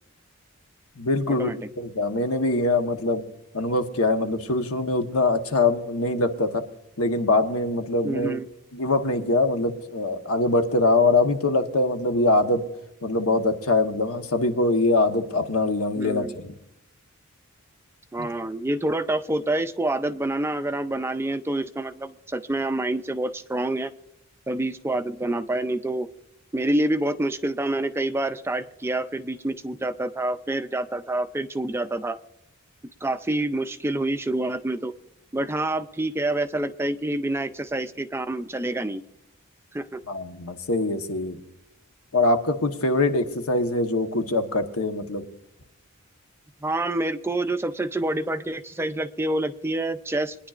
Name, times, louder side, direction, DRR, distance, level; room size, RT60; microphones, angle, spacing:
voice 1, 1.0-1.5 1.8-3.2 3.5-6.6 7.0-8.4 8.7-12.6 13.0-16.5 18.2-18.3 40.1-41.4 42.1-45.2, left 2 dB, 80° left, 6 dB, 1.1 m, -23 dB
voice 2, 8.0-8.5 16.0-16.3 18.1-23.9 24.5-26.1 26.5-32.2 33.0-34.9 35.3-39.0 39.7-40.0 46.6-50.4, right 1 dB, 10° right, 10 dB, 0.4 m, -27 dB
23.5 x 10.0 x 2.5 m, 0.84 s
head